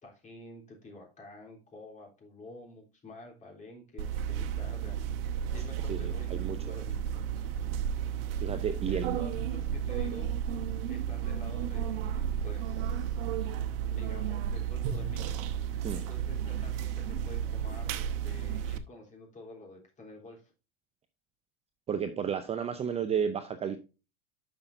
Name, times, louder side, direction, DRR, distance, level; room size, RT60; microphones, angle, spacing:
voice 1, 0.0-5.2 5.5-7.0 8.9-10.3 10.9-13.4 13.8-15.3 15.9-20.5, left 2 dB, 25° left, 0 dB, 3.5 m, -49 dB
sound 1, 4.0-18.8, right 8 dB, 65° right, 1.1 m, -33 dB
voice 2, 5.9-6.6 8.4-9.2 15.8-16.0 21.9-23.8, right 7 dB, 20° right, 8 dB, 0.6 m, -32 dB
11.0 x 5.8 x 2.6 m, 0.30 s
supercardioid pair, 130°, 30 cm